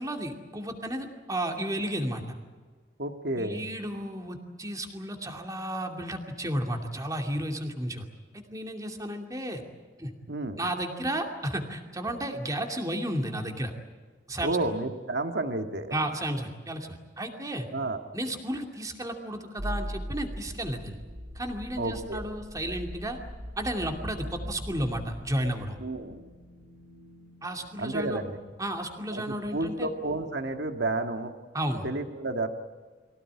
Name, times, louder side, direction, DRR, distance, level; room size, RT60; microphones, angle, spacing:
voice 1, 0.0-2.4 3.3-8.1 8.3-9.6 10.0-10.1 10.6-13.7 14.3-14.6 15.9-17.7 18.1-21.0 21.3-23.2 23.6-25.8 27.4-28.2 28.6-29.9 31.5-31.9, right 1 dB, 20° right, 3 dB, 2.6 m, -33 dB
voice 2, 3.0-3.6 10.3-10.6 14.4-16.0 17.7-18.0 21.8-22.2 25.8-26.2 27.8-28.4 29.1-31.3 31.8-32.5, right 2 dB, 65° right, 6 dB, 1.9 m, -31 dB
sound 1, 19.6-31.2, equal, 85° right, 5.5 m, -42 dB
24.0 x 17.0 x 9.8 m, 1.5 s
head